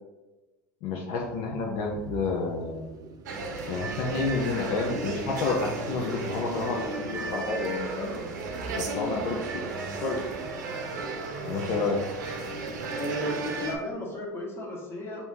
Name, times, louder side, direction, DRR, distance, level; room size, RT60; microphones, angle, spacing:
voice 1, 0.8-2.9 3.7-8.1 8.7-9.6 10.0-10.2 11.4-12.0, left 3 dB, 60° left, -2 dB, 0.7 m, -30 dB
sound 1, 1.2-13.4, right 5 dB, 40° right, 0.5 m, -46 dB
sound 2, 3.3-13.8, right 3 dB, 80° right, 0.7 m, -34 dB
voice 2, 12.9-15.3, left 1 dB, 25° left, -2 dB, 1.4 m, -34 dB
4.3 x 2.8 x 3.6 m, 1.1 s
hypercardioid pair, 85°, 10 cm